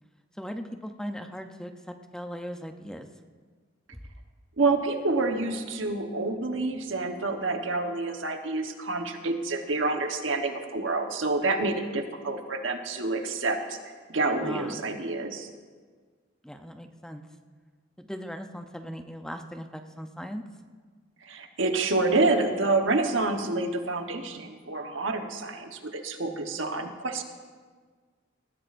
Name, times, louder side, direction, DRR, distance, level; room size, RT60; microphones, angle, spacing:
voice 1, 0.4-3.1 3.9-4.0 14.4-14.8 16.4-17.2 18.0-20.4 26.3-26.6, equal, 5° left, 6 dB, 0.6 m, -39 dB
voice 2, 4.6-13.8 14.1-15.5 21.2-27.2, right 3 dB, 80° right, 5 dB, 1.1 m, -28 dB
20.0 x 14.5 x 2.6 m, 1.5 s
head